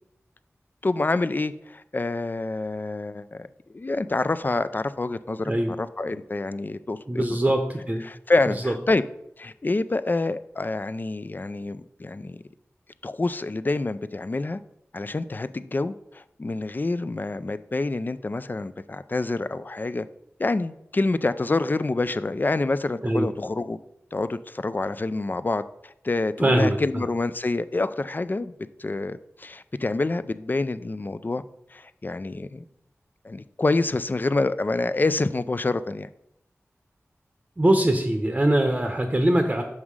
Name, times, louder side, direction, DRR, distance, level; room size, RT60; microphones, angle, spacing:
voice 1, 0.8-3.5 3.7-5.5 5.8-7.4 8.0-9.0 9.4-12.4 13.0-14.6 14.9-20.1 20.4-23.8 24.1-28.5 28.8-31.4 31.7-32.6 33.2-36.1, left 2 dB, 40° left, 13 dB, 0.4 m, -27 dB
voice 2, 7.1-8.0 8.6-8.7 23.0-23.3 26.4-26.8 37.6-39.6, right 1 dB, 25° right, 5 dB, 0.7 m, -22 dB
6.1 x 5.6 x 4.8 m, 0.81 s
wide cardioid pair, 55°, 5 cm